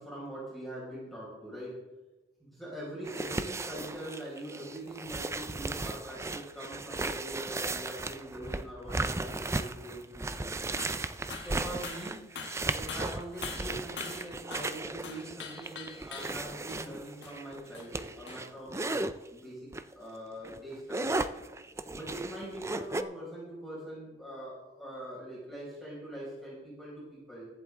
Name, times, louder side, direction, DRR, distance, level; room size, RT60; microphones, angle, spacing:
voice 1, 0.0-1.8 2.4-10.5 11.4-12.3 12.7-21.1 21.9-27.5, right 1 dB, ahead, -7 dB, 5.6 m, -43 dB
sound 1, 3.0-19.1 19.7-19.9 20.3-23.0, right 2 dB, 15° right, 0.5 m, -36 dB
sound 2, 10.8-11.1 11.3-11.6 11.8-14.8 15.0-16.4 16.7-16.8 17.2-17.4 17.7-17.9 18.3-18.4, left 6 dB, 85° left, 1.5 m, -43 dB
22.0 x 8.2 x 3.7 m, 1.1 s
head